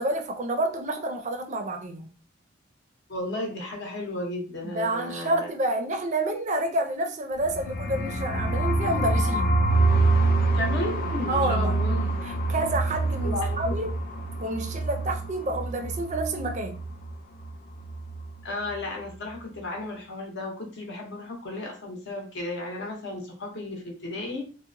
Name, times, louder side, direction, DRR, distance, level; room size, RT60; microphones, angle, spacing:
voice 1, 0.0-2.1 4.6-9.5 11.3-11.8 12.2-14.0 14.4-16.8, right 1 dB, 35° right, 0.4 m, -29 dB
voice 2, 3.1-5.5 10.5-12.2 13.2-13.7 18.4-24.4, left 2 dB, 60° left, 0.7 m, -34 dB
sound 1, 7.4-17.2 17.4-17.5 17.8-18.3, right 2 dB, 45° left, 0.3 m, -26 dB
2.8 x 2.0 x 2.5 m
head